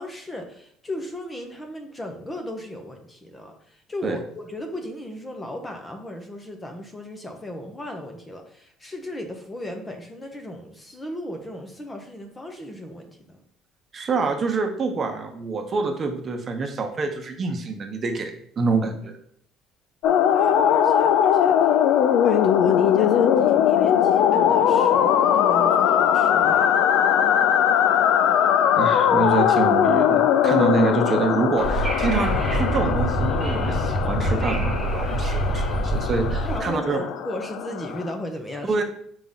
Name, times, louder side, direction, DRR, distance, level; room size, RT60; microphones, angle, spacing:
voice 1, 0.0-13.4 20.3-21.8 22.2-26.8 36.4-38.7, left 1 dB, 15° left, 4 dB, 0.8 m, -36 dB
voice 2, 13.9-18.3 18.6-19.2 28.8-37.0 38.6-38.8, right 4 dB, 30° right, 4 dB, 0.9 m, -26 dB
sound 1, 20.0-38.1, left 9 dB, 70° left, 0.4 m, -20 dB
Wind / Subway metro underground, 31.6-36.6, right 1 dB, 10° right, 1.1 m, -25 dB
4.9 x 3.7 x 5.7 m, 0.64 s
cardioid pair, 145°, 0 cm